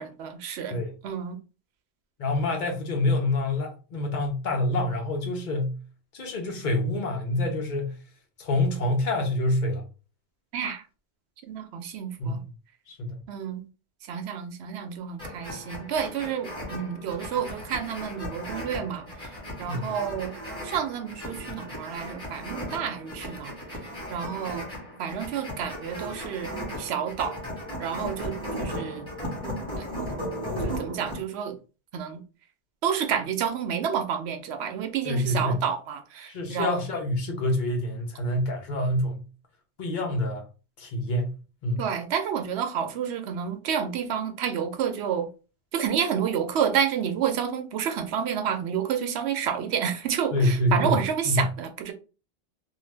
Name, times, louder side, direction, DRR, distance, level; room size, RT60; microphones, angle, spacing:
voice 1, 0.0-0.8 1.0-1.4 10.5-10.8 11.5-12.4 13.3-13.7 14.1-19.3 19.6-20.4 20.6-23.5 24.1-24.7 25.0-27.4 27.8-29.1 30.0-30.1 30.6-31.6 31.9-32.2 32.8-36.7 41.8-45.3 45.7-51.9, right 8 dB, 75° right, 0.8 m, -29 dB
voice 2, 2.2-5.8 6.1-8.0 8.4-9.8 12.2-12.4 12.9-13.2 19.7-19.9 35.0-35.6 36.3-39.2 39.8-40.5 40.8-41.3 41.6-41.8 50.3-51.0 51.2-51.5, left 1 dB, 50° left, 0.8 m, -26 dB
sound 1, 15.2-31.2, equal, 5° left, 1.3 m, -36 dB
2.6 x 2.2 x 3.2 m
omnidirectional pair, 1.1 m